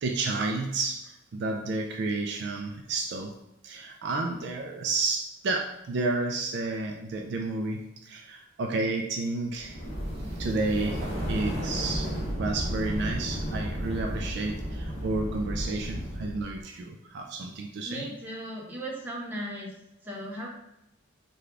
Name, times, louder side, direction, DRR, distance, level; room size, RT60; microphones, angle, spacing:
voice 1, 0.0-3.4 3.6-9.8 10.2-12.1 12.4-18.1, right 3 dB, 55° right, 2 dB, 0.3 m, -31 dB
sound 1, 9.6-16.6, equal, 35° left, 1.2 m, -33 dB
voice 2, 17.8-19.7 20.0-20.5, right 1 dB, 10° right, -4 dB, 0.6 m, -36 dB
3.2 x 2.3 x 3.6 m, 0.87 s
head